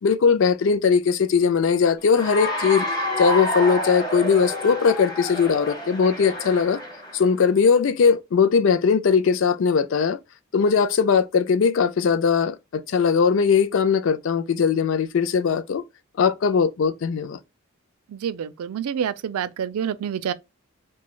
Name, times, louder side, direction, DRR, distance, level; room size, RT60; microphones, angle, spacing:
voice 1, 0.0-2.9 3.2-6.8 7.1-10.2 10.5-15.8 16.2-17.4, left 6 dB, 60° left, 0.3 m, -20 dB
Cheering / Applause, 2.1-7.3, left 1 dB, 20° left, 0.7 m, -28 dB
voice 2, 18.1-20.3, right 8 dB, 90° right, 0.3 m, -27 dB
3.0 x 2.2 x 2.2 m
head